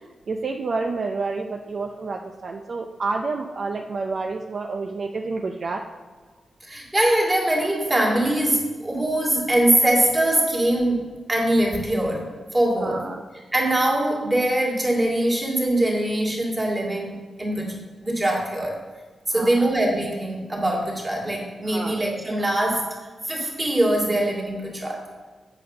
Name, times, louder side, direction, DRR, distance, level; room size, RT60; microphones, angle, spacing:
voice 1, 0.3-5.8 10.6-10.7 12.8-13.2 19.3-19.7 21.7-22.0, right 3 dB, 50° right, 3 dB, 0.6 m, -29 dB
voice 2, 6.6-12.3 12.5-13.0 13.5-18.8 19.3-22.9 23.3-25.0, right 1 dB, 20° right, -1 dB, 2.3 m, -22 dB
8.3 x 5.3 x 6.7 m, 1.4 s
wide cardioid pair, 120°, 0 cm